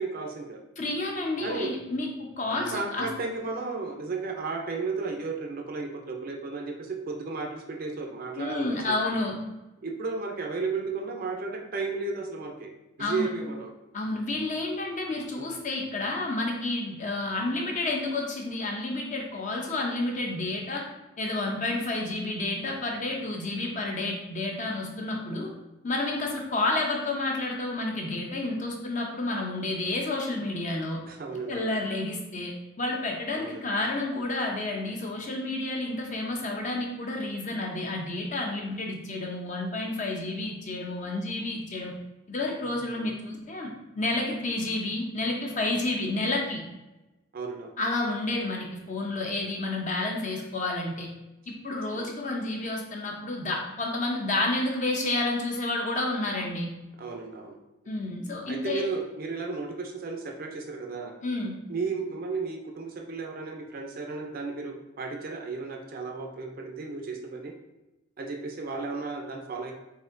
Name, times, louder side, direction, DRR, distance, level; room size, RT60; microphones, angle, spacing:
voice 1, 0.0-0.6 1.4-1.7 2.5-9.0 9.8-12.7 13.0-13.7 31.1-31.7 33.3-33.6 42.9-43.0 47.3-47.7 51.9-52.1 57.0-57.6 58.5-61.1 61.7-67.5 68.2-69.7, right 4 dB, 45° right, 2 dB, 0.5 m, -34 dB
voice 2, 0.8-3.1 8.4-9.4 13.0-13.3 13.9-20.8 21.2-25.5 25.8-31.0 31.5-41.9 42.3-46.6 47.8-51.1 51.5-56.7 57.9-58.8 61.2-61.6, left 2 dB, 35° left, 0 dB, 0.6 m, -30 dB
4.1 x 3.5 x 2.6 m, 1.0 s
head